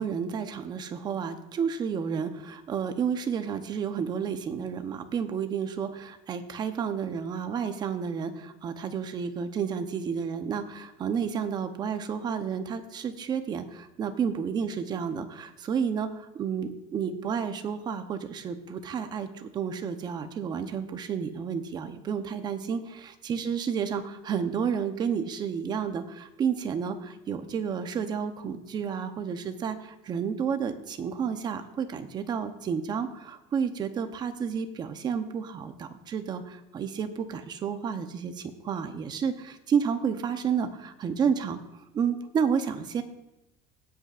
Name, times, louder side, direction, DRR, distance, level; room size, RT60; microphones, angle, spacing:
voice 1, 0.0-41.6 41.9-43.0, right 7 dB, 30° right, 8 dB, 0.9 m, -31 dB
18.5 x 8.4 x 2.5 m, 0.94 s
cardioid pair, 145°, 15 cm